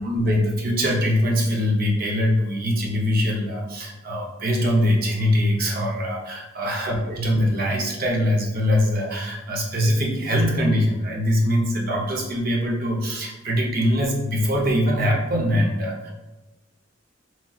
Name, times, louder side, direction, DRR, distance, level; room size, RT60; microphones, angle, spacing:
voice 1, 0.0-16.1, equal, 50° right, -1 dB, 0.6 m, -22 dB
2.9 x 2.7 x 2.3 m, 1.1 s
head